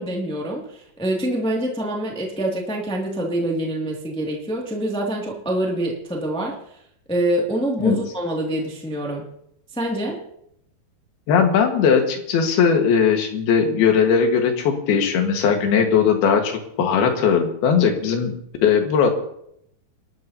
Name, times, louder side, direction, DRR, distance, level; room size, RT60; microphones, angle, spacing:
voice 1, 0.0-6.5 7.1-9.3 9.7-10.2, right 1 dB, 5° left, -2 dB, 0.4 m, -25 dB
voice 2, 11.3-18.4 18.6-19.1, left 6 dB, 75° left, 4 dB, 3.4 m, -19 dB
28.0 x 12.5 x 2.8 m, 0.74 s
omnidirectional pair, 4.6 m